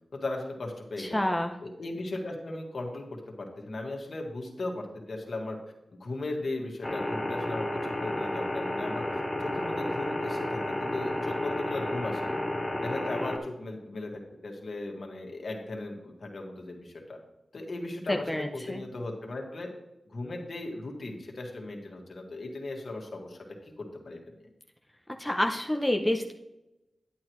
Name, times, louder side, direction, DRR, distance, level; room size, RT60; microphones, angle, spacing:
voice 1, 0.1-1.3 1.6-5.6 6.0-9.1 9.4-12.4 12.8-17.2 17.5-19.7 20.1-24.2, left 2 dB, 60° left, 1 dB, 1.8 m, -37 dB
voice 2, 1.0-1.6 18.1-18.8 25.2-26.3, left 1 dB, 5° left, 3 dB, 0.7 m, -28 dB
sound 1, 6.8-13.4, left 1 dB, 20° left, 1.2 m, -32 dB
10.5 x 8.7 x 3.1 m, 0.91 s
wide cardioid pair, 85°, 0 cm